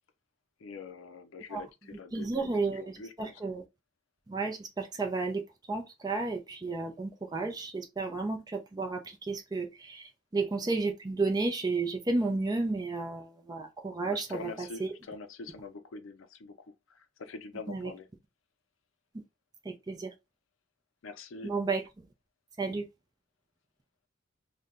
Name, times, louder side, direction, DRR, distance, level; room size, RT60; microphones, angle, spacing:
voice 1, 0.6-3.4 14.0-18.1 21.0-21.5, left 4 dB, 85° left, 0.5 m, -45 dB
voice 2, 2.1-3.6 4.3-5.4 5.7-14.9 17.7-17.9 19.6-20.1 21.4-21.8 22.6-22.9, right 3 dB, 20° right, 0.5 m, -32 dB
2.7 x 2.2 x 3.7 m
head